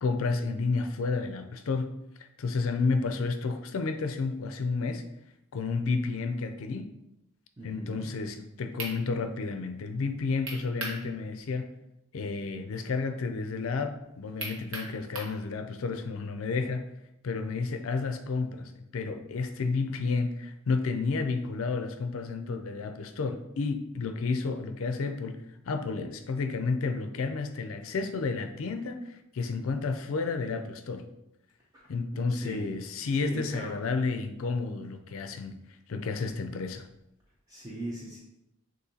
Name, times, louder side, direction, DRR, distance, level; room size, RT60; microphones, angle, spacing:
voice 1, 0.0-1.9 2.4-5.0 5.5-6.9 7.6-11.7 12.1-16.8 17.2-25.4 25.7-31.1 31.9-35.6 35.9-36.8, left 4 dB, 70° left, 7 dB, 0.4 m, -31 dB
voice 2, 7.6-8.0 31.7-31.9 32.1-32.7 33.2-33.8 37.5-38.2, right 1 dB, 15° right, -5 dB, 0.6 m, -38 dB
sound 1, 8.4-8.5 8.8-9.0 10.5-11.0 11.4-11.5 14.4-15.4, right 2 dB, 70° right, 1.1 m, -36 dB
6.6 x 2.6 x 2.8 m, 0.86 s
head